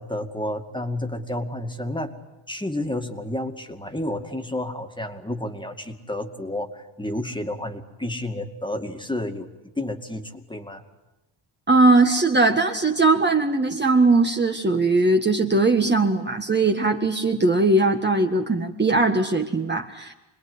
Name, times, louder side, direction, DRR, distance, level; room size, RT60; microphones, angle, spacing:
voice 1, 0.0-2.1 2.5-9.5 9.8-10.8, left 1 dB, 10° left, 5 dB, 2.3 m, -30 dB
voice 2, 11.7-20.1, right 3 dB, 20° right, 3 dB, 1.7 m, -20 dB
27.0 x 21.0 x 9.7 m, 1.0 s
cardioid pair, 120°, 49 cm